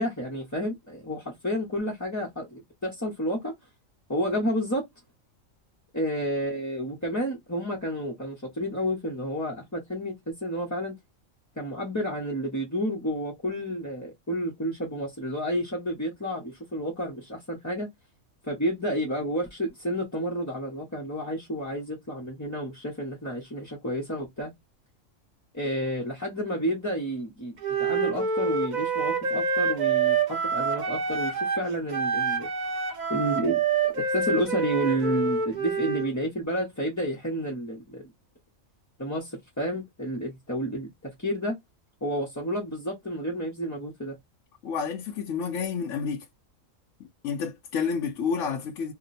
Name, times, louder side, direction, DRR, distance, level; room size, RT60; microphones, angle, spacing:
voice 1, 0.0-3.5 4.1-4.8 5.9-10.9 11.6-17.9 18.4-24.5 25.5-32.5 33.1-33.6 33.9-38.0 39.0-40.9 41.2-41.6 42.0-44.1, equal, 20° left, 0.5 m, -30 dB
Wind instrument woodwind instrument, 27.6-31.7 31.9-36.1, right 5 dB, 40° right, 0.7 m, -27 dB
voice 2, 44.6-46.2 47.2-48.9, left 6 dB, 70° left, 0.9 m, -29 dB
2.8 x 2.0 x 4.0 m
omnidirectional pair, 1.4 m